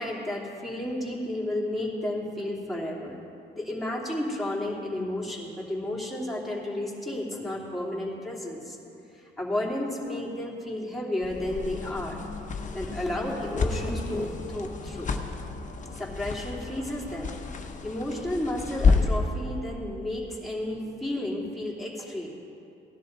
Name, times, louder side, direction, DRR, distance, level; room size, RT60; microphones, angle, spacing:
voice 1, 0.0-3.2 3.5-8.8 9.2-12.2 12.7-15.1 16.0-17.3 17.8-22.3, left 1 dB, ahead, -5 dB, 2.9 m, -32 dB
sound 1, 11.2-19.3, left 4 dB, 40° left, 1.1 m, -30 dB
18.0 x 11.5 x 4.0 m, 2.7 s
cardioid pair, 90°, 20 cm